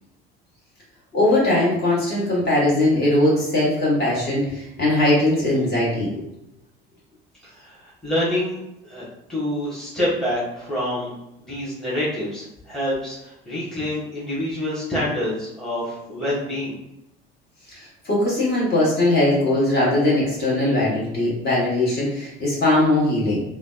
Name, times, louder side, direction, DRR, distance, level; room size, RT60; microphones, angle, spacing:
voice 1, 1.1-6.1 17.7-23.4, left 1 dB, 35° left, -6 dB, 1.5 m, -20 dB
voice 2, 7.4-8.6 8.8-11.1 11.4-16.8, left 1 dB, ahead, -8 dB, 1.1 m, -27 dB
3.3 x 2.2 x 2.4 m, 0.83 s
figure-of-eight pair, 60°, 29 cm